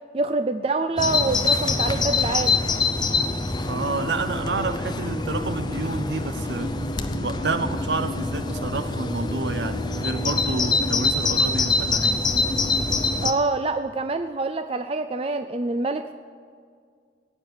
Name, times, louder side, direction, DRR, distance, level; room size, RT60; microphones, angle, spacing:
voice 1, 0.1-2.5 13.2-16.1, right 3 dB, 30° right, 0.3 m, -26 dB
Bird vocalization bird call bird song, 1.0-13.3, left 3 dB, 20° left, 0.6 m, -25 dB
voice 2, 3.7-6.8 7.2-12.3, right 3 dB, 65° right, 0.8 m, -29 dB
16.5 x 8.8 x 8.0 m
head